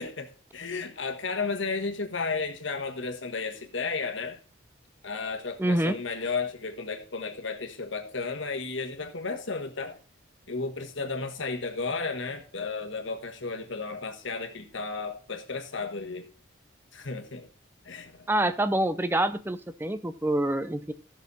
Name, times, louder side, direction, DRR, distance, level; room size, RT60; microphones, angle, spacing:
voice 1, 0.0-4.4 5.0-10.0 10.5-16.3 16.9-17.5 17.8-18.3, left 4 dB, 75° left, 1.4 m, -33 dB
voice 2, 5.6-6.0 18.3-20.9, right 1 dB, 10° right, 0.5 m, -26 dB
15.5 x 6.3 x 4.1 m
head